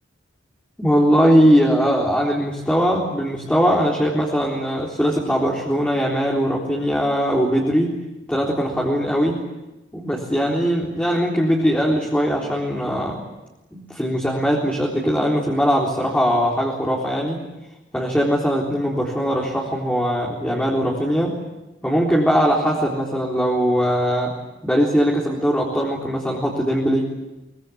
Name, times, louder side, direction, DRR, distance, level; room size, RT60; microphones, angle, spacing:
voice 1, 0.8-7.9 8.3-9.4 9.9-13.2 13.7-17.4 17.9-21.4 21.8-24.3 24.6-27.1, equal, 5° left, -3 dB, 3.8 m, -20 dB
24.5 x 23.0 x 8.5 m, 1.0 s
head